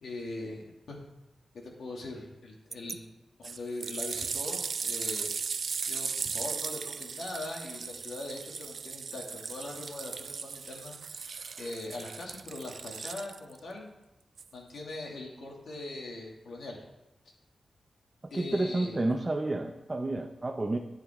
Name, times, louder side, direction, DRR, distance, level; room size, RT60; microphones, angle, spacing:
voice 1, 0.0-1.0 1.5-3.1 3.4-5.3 5.9-13.9 14.5-16.8 18.3-19.0, left 2 dB, 85° left, -1 dB, 2.5 m, -41 dB
sound 1, 2.7-3.0 3.4-13.6 14.4-14.5, right 5 dB, 60° right, 0.4 m, -37 dB
voice 2, 18.2-20.8, right 2 dB, 25° right, 3 dB, 0.7 m, -30 dB
13.5 x 9.0 x 3.7 m, 0.98 s
wide cardioid pair, 160°, 0 cm